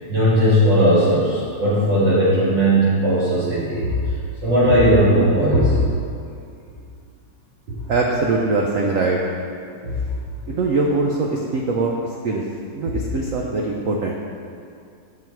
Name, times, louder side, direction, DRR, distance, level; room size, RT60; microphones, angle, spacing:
voice 1, 0.1-3.9 4.4-5.8 7.7-7.8 9.8-9.9, equal, 65° right, -11 dB, 2.5 m, -17 dB
voice 2, 7.9-9.2 10.5-11.9 12.2-12.4 12.7-14.1, right 3 dB, 85° right, -1 dB, 0.7 m, -22 dB
7.0 x 5.9 x 4.6 m, 2.4 s
omnidirectional pair, 2.1 m